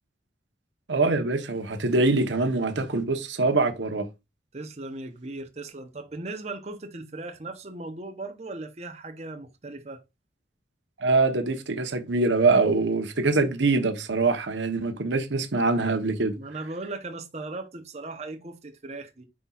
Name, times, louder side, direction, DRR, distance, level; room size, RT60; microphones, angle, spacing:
voice 1, 0.9-4.1 11.0-16.4, right 3 dB, 80° right, 1.0 m, -24 dB
voice 2, 4.5-10.0 16.4-19.2, right 2 dB, 35° right, 0.8 m, -38 dB
9.6 x 4.2 x 2.4 m
head